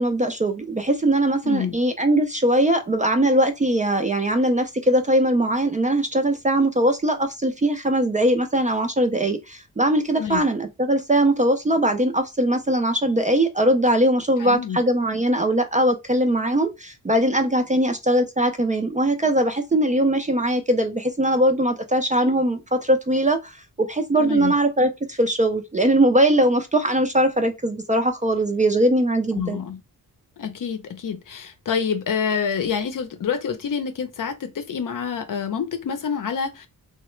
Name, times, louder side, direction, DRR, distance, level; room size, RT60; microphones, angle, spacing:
voice 1, 0.0-29.6, right 1 dB, 20° right, 0.3 m, -21 dB
voice 2, 1.4-1.8 10.2-10.4 14.4-14.8 17.7-17.8 24.2-24.6 29.3-29.8 30.4-36.7, left 6 dB, 60° left, 0.6 m, -27 dB
3.1 x 2.1 x 3.1 m
wide cardioid pair, 100°, 37 cm